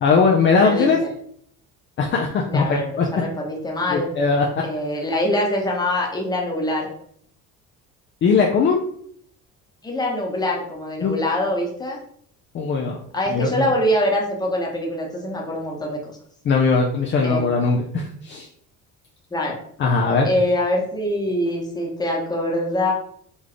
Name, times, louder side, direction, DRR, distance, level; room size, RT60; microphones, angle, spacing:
voice 1, 0.0-1.0 2.0-3.1 3.9-4.6 8.2-8.8 11.0-11.1 12.5-13.0 13.3-13.7 16.4-18.5 19.8-20.3, left 4 dB, 35° left, 0 dB, 0.5 m, -19 dB
voice 2, 2.5-4.1 4.6-6.9 9.8-12.0 13.1-16.0 17.2-17.5 19.3-19.6 20.2-22.9, left 1 dB, 10° left, -1 dB, 1.0 m, -24 dB
4.0 x 3.5 x 3.2 m, 0.65 s
cardioid pair, 140°, 32 cm